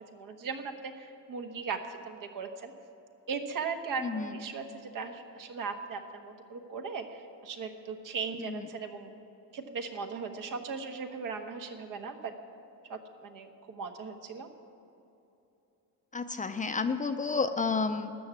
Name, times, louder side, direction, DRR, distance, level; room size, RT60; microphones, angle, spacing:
voice 1, 0.1-2.7 3.3-9.2 9.5-12.3 12.9-14.5, right 5 dB, 70° right, 5 dB, 1.3 m, -38 dB
voice 2, 4.0-4.4 8.4-8.7 16.1-18.1, left 4 dB, 25° left, 8 dB, 0.5 m, -31 dB
13.0 x 7.0 x 9.6 m, 2.9 s
cardioid pair, 135°, 34 cm